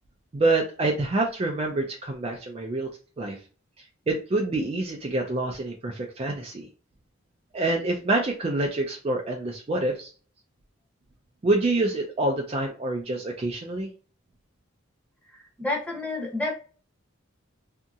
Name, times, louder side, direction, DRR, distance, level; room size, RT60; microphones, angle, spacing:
voice 1, 0.3-2.9 3.2-3.4 4.1-6.7 7.5-10.1 11.4-13.9, right 2 dB, 30° right, 1 dB, 0.4 m, -26 dB
voice 2, 15.3-16.5, left 2 dB, 5° left, -2 dB, 0.8 m, -30 dB
2.8 x 2.7 x 2.3 m, 0.38 s
head